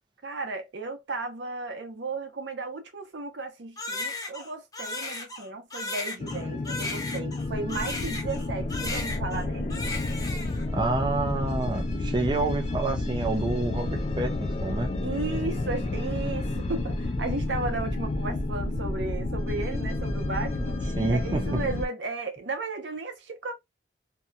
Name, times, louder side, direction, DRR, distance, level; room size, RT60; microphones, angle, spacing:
voice 1, 0.2-9.8 15.0-20.8 21.1-23.5, right 3 dB, 75° right, 0.7 m, -34 dB
Crying sobbing, 3.8-8.5 8.7-9.4 9.7-10.7, left 2 dB, 20° left, 0.8 m, -35 dB
sound 1, 6.2-21.9, left 2 dB, 35° left, 0.4 m, -30 dB
voice 2, 10.7-14.9 21.0-21.6, right 2 dB, 25° right, 0.4 m, -28 dB
2.8 x 2.2 x 2.4 m
head